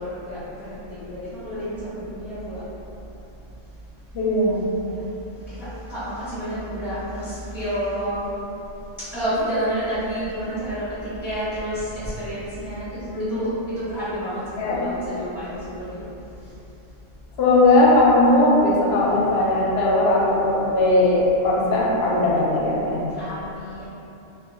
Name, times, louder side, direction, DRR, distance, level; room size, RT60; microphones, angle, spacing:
voice 1, 0.0-2.6 4.8-5.0 5.5-8.2 9.1-13.0 13.3-16.1 23.2-23.9, equal, ahead, -14 dB, 0.7 m, -30 dB
voice 2, 4.1-4.6 13.1-13.4 14.6-14.9 17.4-23.0, left 2 dB, 65° left, -5 dB, 0.7 m, -18 dB
2.3 x 2.1 x 3.4 m, 2.9 s
omnidirectional pair, 1.3 m